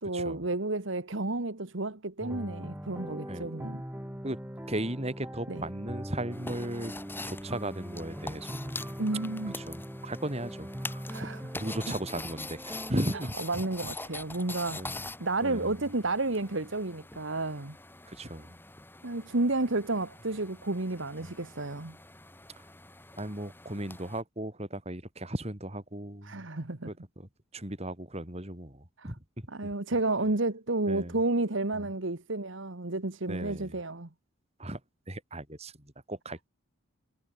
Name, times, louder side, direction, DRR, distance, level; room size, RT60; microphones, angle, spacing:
voice 1, 0.0-3.8 5.5-5.6 9.0-9.6 11.1-11.4 13.4-17.8 19.0-22.0 26.2-26.9 29.0-29.1 29.5-34.1, right 2 dB, 60° right, 1.5 m, -31 dB
sound 1, 2.2-13.2, equal, 10° right, 2.3 m, -41 dB
voice 2, 4.7-6.9 7.3-8.9 9.6-11.0 11.5-13.3 14.7-15.0 15.4-15.8 18.1-18.6 21.2-21.3 23.2-26.4 27.2-27.3 27.5-29.5 30.9-31.2 31.7-31.9 33.3-33.8 34.6-34.8 35.1-36.5, right 1 dB, 30° right, 4.1 m, -36 dB
sound 2, 6.3-24.2, left 2 dB, 10° left, 3.1 m, -44 dB
head